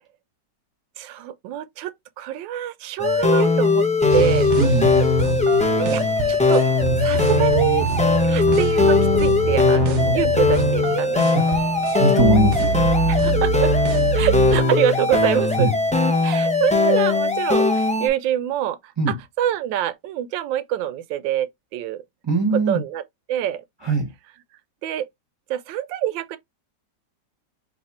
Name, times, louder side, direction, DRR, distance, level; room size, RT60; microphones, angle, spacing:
voice 1, 1.0-4.5 5.9-6.0 6.3-6.6 7.0-7.9 8.2-11.2 13.1-13.7 14.1-15.7 16.2-22.0 22.5-23.0 23.3-23.6 24.8-25.1 25.5-26.4, right 11 dB, 85° right, 1.3 m, -25 dB
sound 1, 3.0-18.1, left 3 dB, 10° left, 0.3 m, -19 dB
sound 2, 4.1-14.6, right 5 dB, 65° right, 0.7 m, -25 dB
voice 2, 12.0-12.7 15.6-15.7 19.0-19.1 22.2-22.8 23.8-24.1, right 1 dB, 20° right, 0.7 m, -20 dB
4.0 x 2.6 x 4.2 m
omnidirectional pair, 2.0 m